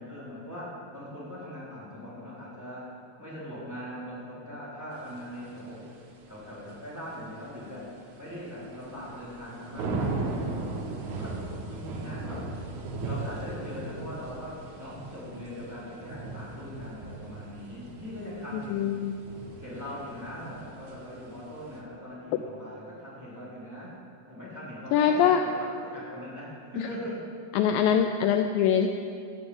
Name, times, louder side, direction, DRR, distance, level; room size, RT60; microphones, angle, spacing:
voice 1, 0.0-2.9 3.2-5.9 6.2-7.9 8.2-12.5 13.0-19.0 19.6-24.0 24.3-27.3, left 1 dB, 5° right, -8 dB, 3.5 m, -41 dB
sound 1, 5.0-21.8, right 3 dB, 60° right, 2.5 m, -38 dB
voice 2, 18.5-19.1 24.9-25.4 26.8-26.9 27.5-28.9, left 8 dB, 80° left, 6 dB, 2.1 m, -23 dB
13.5 x 8.4 x 8.8 m, 2.5 s
omnidirectional pair, 4.3 m